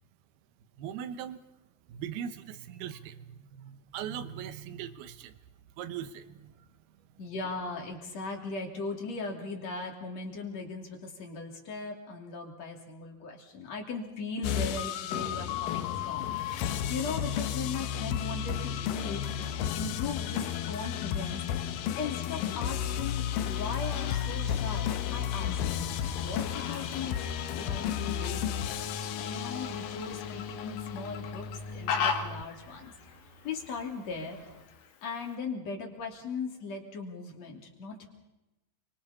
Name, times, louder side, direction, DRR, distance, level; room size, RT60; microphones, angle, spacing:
voice 1, 0.8-1.4 1.9-5.4 5.8-6.7, right 9 dB, 75° right, 11 dB, 2.8 m, -40 dB
voice 2, 7.2-21.4 22.0-25.6 26.2-28.6 29.2-32.9 33.4-34.4 35.0-38.1, left 4 dB, 45° left, 1 dB, 3.7 m, -38 dB
sound 1, 14.4-32.4, left 9 dB, 70° left, 2.2 m, -33 dB
Car passing by / Traffic noise roadway noise, 21.1-34.6, right 3 dB, 15° right, 4.0 m, -53 dB
Fowl, 23.4-35.4, left 6 dB, 85° left, 4.3 m, -40 dB
29.5 x 24.5 x 4.2 m, 0.97 s
omnidirectional pair, 4.9 m